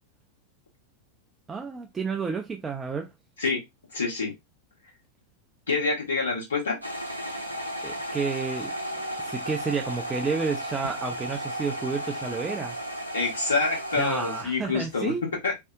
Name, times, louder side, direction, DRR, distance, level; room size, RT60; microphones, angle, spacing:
voice 1, 1.5-3.1 7.8-8.7 9.2-12.8 13.9-15.2, right 5 dB, 15° right, 0.3 m, -30 dB
voice 2, 3.9-4.3 5.7-6.8 13.1-15.1 15.4-15.5, left 4 dB, 70° left, 1.1 m, -26 dB
sound 1, 6.8-14.4, right 1 dB, 90° right, 0.5 m, -34 dB
2.6 x 2.0 x 2.4 m
figure-of-eight pair, 90°, 0 cm